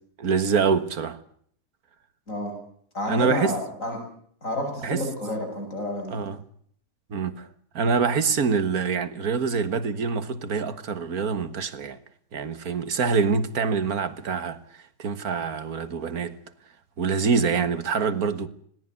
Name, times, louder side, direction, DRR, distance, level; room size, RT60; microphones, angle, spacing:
voice 1, 0.2-1.2 3.1-3.6 4.8-5.1 6.1-6.4 7.1-7.5 7.8-12.0 12.3-14.6 15.0-16.4 17.0-18.5, right 5 dB, 90° right, 2.0 m, -25 dB
voice 2, 2.9-4.0 4.4-6.2, left 1 dB, 60° left, 7.6 m, -29 dB
20.5 x 17.5 x 9.5 m
omnidirectional pair, 1.5 m